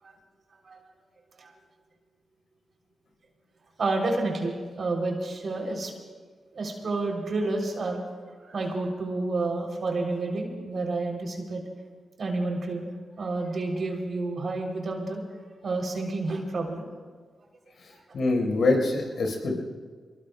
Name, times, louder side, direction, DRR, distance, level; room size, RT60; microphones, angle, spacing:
voice 1, 3.8-5.9 6.5-8.0 8.4-11.6 12.2-12.9 13.2-15.2 15.6-16.9, right 2 dB, 60° right, 1 dB, 3.1 m, -29 dB
voice 2, 17.8-19.6, left 2 dB, 70° left, 1 dB, 4.1 m, -25 dB
23.5 x 20.5 x 2.2 m, 1.5 s
supercardioid pair, 45°, 0 cm